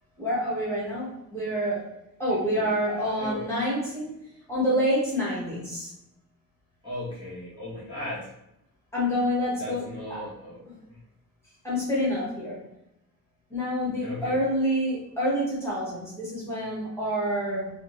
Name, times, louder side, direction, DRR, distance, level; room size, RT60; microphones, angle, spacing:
voice 1, 0.2-1.9 2.2-4.1 4.5-5.9 8.9-10.2 10.7-10.8 11.6-12.6 13.5-17.7, equal, 5° left, -7 dB, 1.5 m, -27 dB
voice 2, 2.4-3.5 6.8-8.3 9.5-10.6 13.8-14.4, left 1 dB, 15° right, -10 dB, 1.5 m, -37 dB
3.5 x 2.8 x 3.2 m, 0.84 s
cardioid pair, 140°, 35 cm